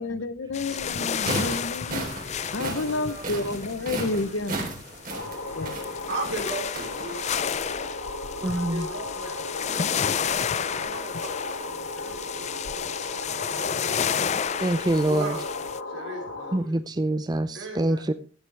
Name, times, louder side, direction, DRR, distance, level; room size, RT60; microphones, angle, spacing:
voice 1, 0.0-2.1 2.5-4.8 5.6-5.8, left 2 dB, 70° left, 0.8 m, -30 dB
sound 1, 0.5-15.8, left 8 dB, 35° left, 0.4 m, -32 dB
sound 2, 0.9-7.4, right 2 dB, 45° right, 3.7 m, -35 dB
voice 2, 2.6-3.4 3.8-4.7 6.1-7.5 8.3-9.4 10.8-13.1 13.4-13.9 15.0-15.6 15.9-16.8 17.5-18.1, right 2 dB, 85° right, 5.0 m, -38 dB
sound 3, 5.1-16.6, left 2 dB, 90° left, 2.0 m, -36 dB
voice 3, 8.4-8.9 14.6-15.3 16.5-18.1, right 1 dB, 20° right, 0.5 m, -25 dB
15.5 x 9.6 x 3.4 m
head